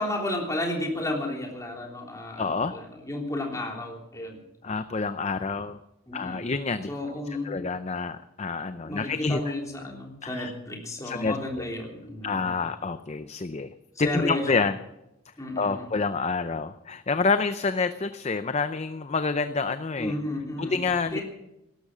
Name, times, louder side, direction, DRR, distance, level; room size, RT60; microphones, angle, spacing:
voice 1, 0.0-4.4 6.1-6.5 6.9-7.6 8.8-12.6 13.9-14.6 15.4-15.9 20.0-20.8 21.1-21.2, left 1 dB, 15° left, 0 dB, 3.4 m, -32 dB
voice 2, 2.4-2.7 4.6-5.8 6.1-6.9 7.4-9.4 10.2-10.5 11.0-11.3 12.2-13.7 14.0-14.8 15.6-20.1 20.6-21.2, left 4 dB, 30° left, 11 dB, 0.5 m, -28 dB
18.0 x 13.0 x 6.1 m, 0.89 s
head